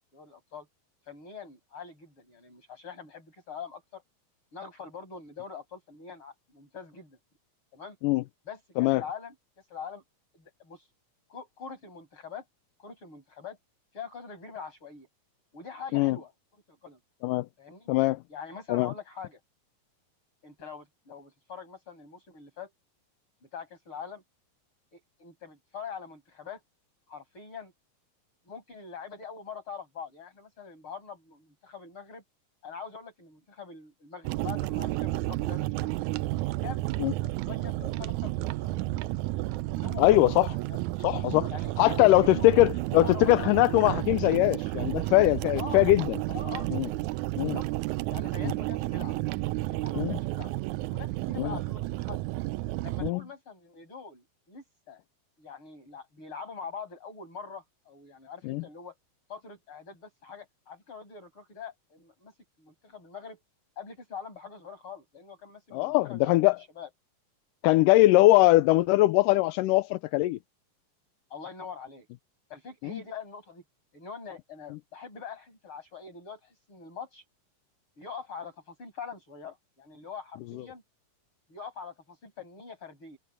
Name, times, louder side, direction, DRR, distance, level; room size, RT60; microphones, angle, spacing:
voice 1, 0.1-0.7 1.1-4.0 4.5-7.2 7.7-8.0 8.5-9.3 9.7-10.0 10.3-10.9 11.3-12.4 12.8-13.6 13.9-15.1 15.5-16.3 16.7-17.0 17.6-17.9 18.3-19.4 20.4-22.7 23.5-24.2 24.9-26.6 27.1-27.7 28.5-32.2 32.6-35.9 36.6-36.8 37.2-39.0 39.7-40.3 40.7-40.8 41.5-42.5 42.9-43.6 45.5-45.8 46.3-46.7 47.4-47.7 48.1-49.2 49.5-50.5 50.9-52.2 52.8-55.0 55.4-58.9 59.3-63.4 63.8-66.9 71.3-72.1 72.5-73.6 73.9-77.2 78.0-80.8 81.5-83.2, left 6 dB, 35° left, 7.9 m, -43 dB
voice 2, 17.9-18.2 18.7-18.9 37.0-37.1 40.0-40.5 41.0-41.5 41.8-46.2 46.7-46.9 47.4-47.6 48.4-48.5 50.0-50.2 51.4-51.5 53.0-53.2 58.4-58.6 65.7-66.6 67.6-70.4 72.8-73.0, left 18 dB, 80° left, 2.1 m, -22 dB
sound 1, 34.2-53.1, right 18 dB, 90° right, 1.7 m, -31 dB
omnidirectional pair, 4.0 m